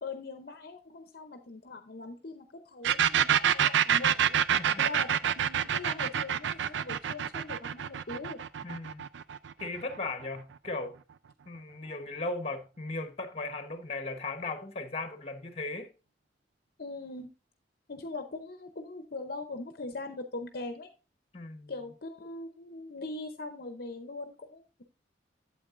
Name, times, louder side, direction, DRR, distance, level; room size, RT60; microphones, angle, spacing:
voice 1, 0.0-4.4 4.8-8.4 16.8-17.3 17.9-20.9 21.7-24.8, left 3 dB, 55° left, 0.7 m, -41 dB
sound 1, 2.8-10.4, right 9 dB, 75° right, 0.4 m, -27 dB
voice 2, 4.5-4.9 8.6-9.1 9.6-11.0 11.5-15.9 21.3-21.7, left 3 dB, 35° left, 1.0 m, -37 dB
8.6 x 7.9 x 2.5 m
head